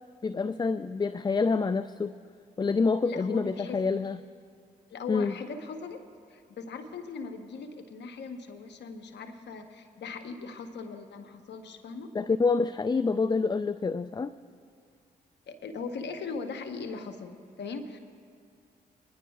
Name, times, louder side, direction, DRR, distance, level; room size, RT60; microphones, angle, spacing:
voice 1, 0.2-2.1 2.6-4.2 5.1-5.3 12.1-14.3, left 4 dB, 25° left, 13 dB, 0.4 m, -27 dB
voice 2, 3.0-3.8 4.9-6.0 6.3-12.1 15.5-18.0, left 4 dB, 70° left, 7 dB, 1.0 m, -39 dB
25.0 x 10.0 x 2.3 m, 2.2 s
supercardioid pair, 45°, 19 cm